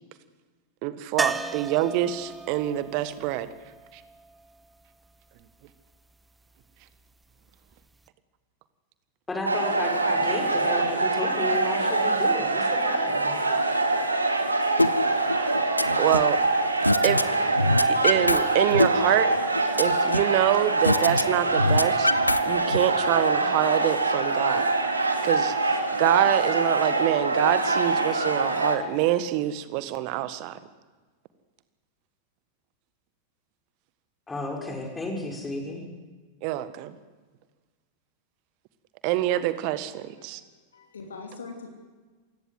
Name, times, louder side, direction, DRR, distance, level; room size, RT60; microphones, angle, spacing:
voice 1, 0.8-3.5 3.9-4.0 16.0-16.4 17.0-17.2 17.9-19.4 19.8-22.1 22.4-24.7 25.2-30.6 36.4-36.9 39.0-40.4, right 14 dB, 45° right, 13 dB, 1.6 m, -26 dB
sound 1, 1.2-5.1 7.7-7.8 8.1-8.2, right 3 dB, 10° right, 1.0 m, -35 dB
voice 2, 9.3-13.4 34.3-35.8, left 2 dB, 10° left, 1 dB, 6.0 m, -33 dB
sound 2, 9.5-28.8, right 2 dB, 80° right, 2.4 m, -24 dB
sound 3, 14.8-14.9 15.3-16.3 16.8-17.2 17.5-18.4 18.7-20.3 20.8-21.2 21.5-22.8, left 1 dB, 85° left, 0.8 m, -23 dB
voice 3, 40.2-41.7, left 4 dB, 70° left, 4 dB, 2.9 m, -43 dB
27.5 x 17.0 x 7.9 m, 1.4 s
figure-of-eight pair, 90°, 0 cm